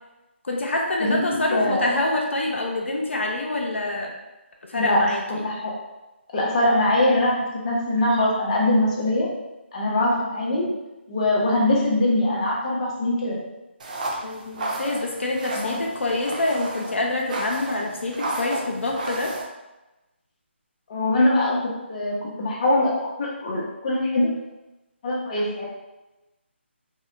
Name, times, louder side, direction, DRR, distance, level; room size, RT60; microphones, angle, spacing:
voice 1, 0.4-4.1 4.7-5.4 14.2-19.3, left 2 dB, 80° left, 0 dB, 0.5 m, -26 dB
voice 2, 1.0-1.9 4.7-5.7 6.3-9.3 9.7-10.8 11.1-13.5 15.5-15.8 20.9-21.6 21.9-24.3 25.0-25.6, left 1 dB, 35° left, -4 dB, 0.6 m, -22 dB
sound 1, 13.8-19.4, right 2 dB, 40° right, 0.4 m, -33 dB
2.7 x 2.1 x 2.4 m, 1.0 s
figure-of-eight pair, 155°, 7 cm